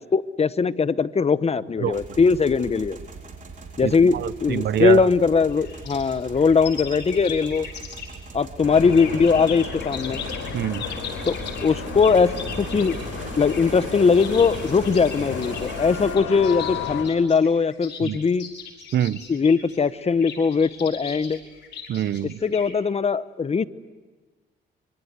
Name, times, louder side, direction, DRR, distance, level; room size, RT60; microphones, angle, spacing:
voice 1, 0.0-3.0 3.8-7.7 8.3-10.2 11.3-11.4 11.6-13.0 13.4-18.5 19.3-21.4 22.4-23.6, left 5 dB, 30° left, 0.9 m, -20 dB
sound 1, 1.9-16.2, right 4 dB, 40° right, 4.2 m, -39 dB
voice 2, 3.8-5.1 10.5-10.8 18.0-18.2 18.9-19.2 21.9-22.4, right 10 dB, 60° right, 0.7 m, -24 dB
sound 2, 5.5-8.3 8.7-22.7, left 7 dB, 60° left, 6.2 m, -39 dB
sound 3, 8.6-17.0, left 7 dB, 90° left, 5.4 m, -33 dB
25.0 x 24.5 x 8.1 m
cardioid pair, 90°, 20 cm